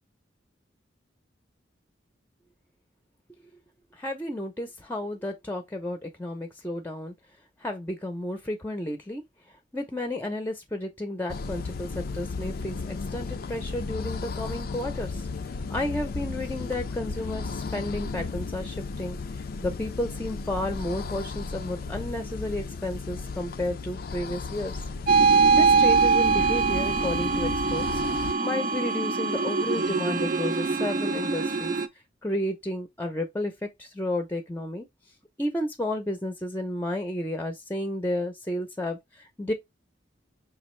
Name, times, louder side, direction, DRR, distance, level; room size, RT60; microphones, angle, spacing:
voice 1, 3.9-7.1 7.6-9.2 9.7-15.2 15.7-24.8 25.5-28.0 28.4-31.7 32.2-34.9 35.4-39.5, left 1 dB, 10° left, 0.6 m, -32 dB
sound 1, 11.3-28.3, left 4 dB, 55° left, 0.4 m, -35 dB
sound 2, 25.1-31.9, right 4 dB, 50° right, 0.6 m, -23 dB
5.9 x 2.5 x 3.1 m
head